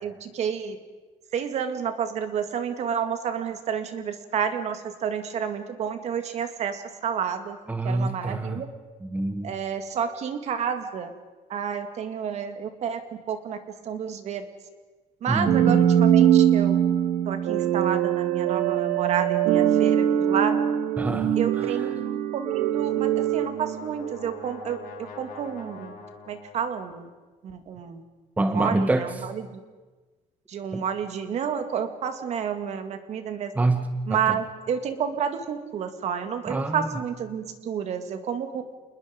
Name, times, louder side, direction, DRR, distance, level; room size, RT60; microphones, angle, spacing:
voice 1, 0.0-0.8 1.3-7.6 7.8-8.7 9.4-11.1 11.5-13.6 13.9-14.4 15.2-16.8 17.3-20.6 21.4-25.9 26.3-27.1 27.4-28.0 28.4-29.6 30.5-33.5 34.1-38.8, right 7 dB, 55° right, 8 dB, 2.1 m, -30 dB
voice 2, 7.7-8.6 9.0-9.5 15.3-15.8 21.0-21.9 28.4-29.1 30.7-30.8 33.6-34.4 36.5-36.9, right 2 dB, 10° right, 8 dB, 1.0 m, -26 dB
sound 1, 15.5-24.4, right 10 dB, 85° right, 1.3 m, -22 dB
Brass instrument, 22.5-26.8, left 5 dB, 75° left, 3.7 m, -45 dB
28.5 x 20.5 x 5.2 m, 1.3 s
cardioid pair, 135°, 14 cm